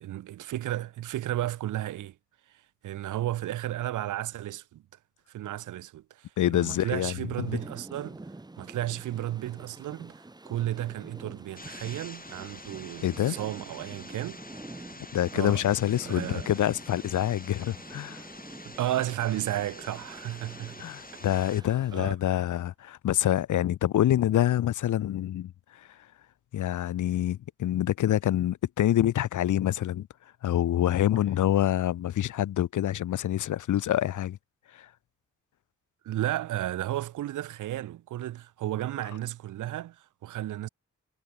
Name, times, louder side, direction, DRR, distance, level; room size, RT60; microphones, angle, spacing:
voice 1, 0.0-2.1 2.8-4.8 5.3-8.2 8.6-14.4 15.3-15.6 16.0-16.5 18.7-20.9 21.3-21.4 21.9-22.2 36.0-40.7, right 13 dB, 80° right, 0.5 m, -33 dB
voice 2, 6.4-7.5 13.0-13.4 15.1-18.2 20.8-25.9 26.5-30.1 30.4-34.4 34.7-34.9, left 12 dB, 75° left, 0.6 m, -26 dB
sound 1, 7.3-22.1, right 2 dB, 15° right, 0.8 m, -47 dB
sound 2, 11.5-21.6, left 2 dB, 30° left, 3.1 m, -47 dB
cardioid pair, 45°, 30 cm